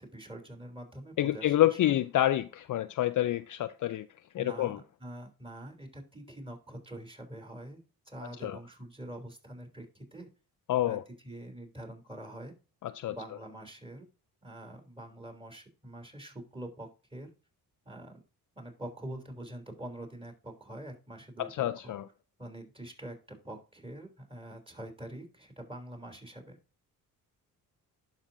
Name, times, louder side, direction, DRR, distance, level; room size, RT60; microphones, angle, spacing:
voice 1, 0.0-2.0 4.4-7.8 8.1-10.3 10.8-11.0 11.2-12.5 13.1-14.0 14.4-17.3 17.8-18.2 18.5-21.9 22.4-26.6, right 1 dB, 15° right, 3.2 m, -45 dB
voice 2, 1.2-4.1 4.3-4.8 8.4-8.6 10.7-11.0 12.8-13.2 21.4-22.0, left 13 dB, 55° left, 0.5 m, -28 dB
11.5 x 5.1 x 2.7 m
cardioid pair, 65°, 39 cm